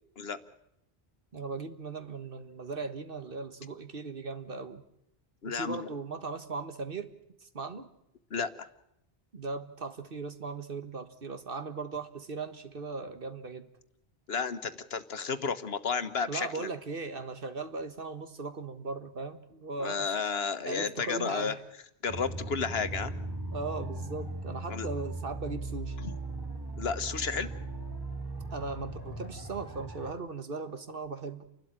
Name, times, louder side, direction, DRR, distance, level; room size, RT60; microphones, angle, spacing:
voice 1, 1.3-4.8 5.5-7.1 7.4-7.9 9.3-13.7 16.3-20.3 20.6-21.6 23.5-26.0 28.5-31.4, right 4 dB, 60° right, 9 dB, 1.7 m, -38 dB
voice 2, 5.4-5.9 8.3-8.7 14.3-16.7 19.8-21.6 22.0-23.1 24.7-24.9 26.0-26.1 26.8-27.5, left 5 dB, 75° left, 11 dB, 1.4 m, -32 dB
sound 1, 22.1-30.1, right 2 dB, 20° right, 2.9 m, -38 dB
29.5 x 12.5 x 9.0 m, 0.79 s
omnidirectional pair, 1.1 m